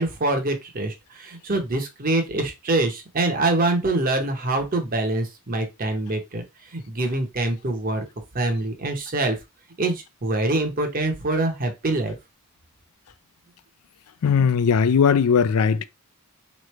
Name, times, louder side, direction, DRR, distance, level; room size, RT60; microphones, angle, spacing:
voice 1, 0.0-8.0 8.3-9.4 9.8-12.2, right 2 dB, 40° right, 0.8 m, -25 dB
voice 2, 14.2-15.8, left 6 dB, 75° left, 0.4 m, -18 dB
3.8 x 3.1 x 3.2 m
head